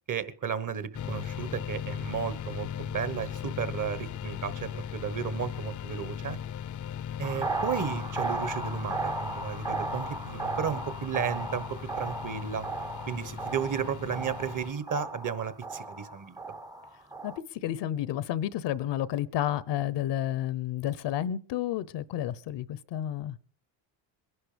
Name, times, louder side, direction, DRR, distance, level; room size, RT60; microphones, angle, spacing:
voice 1, 0.1-6.4 7.2-12.7 13.1-16.4, right 7 dB, 40° right, 1.5 m, -34 dB
sound 1, 0.9-14.7, left 9 dB, 40° left, 0.7 m, -38 dB
sound 2, 7.2-17.4, right 2 dB, 10° right, 0.7 m, -36 dB
voice 2, 17.2-23.4, left 11 dB, 65° left, 0.9 m, -31 dB
22.0 x 11.0 x 5.2 m
cardioid pair, 100°, 45 cm